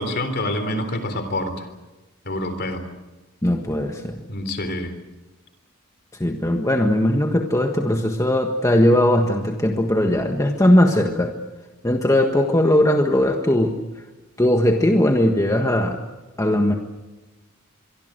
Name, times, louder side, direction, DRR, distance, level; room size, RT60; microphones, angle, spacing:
voice 1, 0.0-1.7 2.2-2.8 4.3-4.9, left 1 dB, 50° left, 9 dB, 3.7 m, -26 dB
voice 2, 3.4-4.1 6.2-11.4 11.8-13.8 14.4-16.0 16.4-16.7, left 1 dB, 15° left, 3 dB, 1.5 m, -19 dB
24.5 x 24.0 x 8.0 m, 1.1 s
head